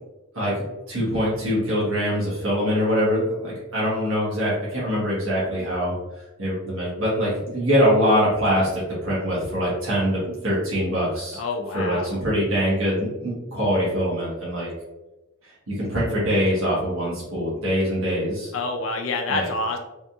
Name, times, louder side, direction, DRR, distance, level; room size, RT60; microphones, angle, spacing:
voice 1, 0.3-11.4 11.7-14.7 15.7-18.5 19.3-19.5, equal, 90° right, -7 dB, 1.2 m, -23 dB
voice 2, 11.3-12.2 18.5-19.8, left 3 dB, 70° left, 3 dB, 0.5 m, -27 dB
3.4 x 2.7 x 2.3 m, 1.0 s
head